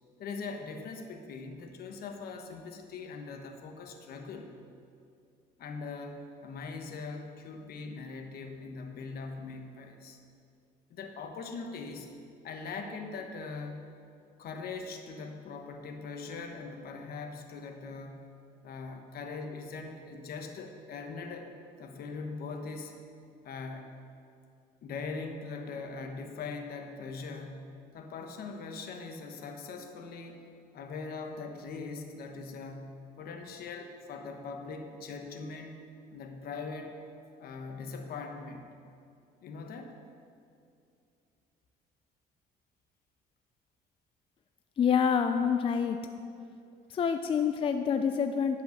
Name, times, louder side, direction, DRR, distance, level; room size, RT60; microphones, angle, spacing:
voice 1, 0.2-4.6 5.6-10.2 10.9-12.1 12.4-13.9 14.4-18.3 18.6-21.5 21.8-22.9 23.4-23.9 24.8-30.4 30.7-35.7 36.1-37.0 37.4-38.7 39.4-40.0, left 4 dB, 65° left, 4 dB, 1.1 m, -41 dB
voice 2, 44.8-46.0 46.9-48.6, left 7 dB, 35° left, 7 dB, 0.4 m, -27 dB
10.5 x 5.6 x 6.4 m, 2.5 s
cardioid pair, 110°, 17 cm